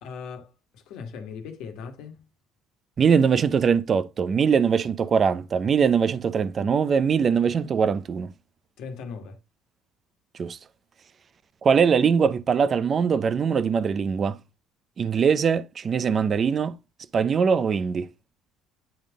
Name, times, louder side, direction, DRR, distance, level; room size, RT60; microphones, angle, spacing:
voice 1, 0.0-2.2 8.8-9.4, left 5 dB, 60° left, 1.6 m, -39 dB
voice 2, 3.0-8.3 10.4-10.6 11.6-14.4 15.0-16.7 17.1-18.1, right 6 dB, 30° right, 0.5 m, -22 dB
10.0 x 3.6 x 3.6 m
cardioid pair, 160°, 0 cm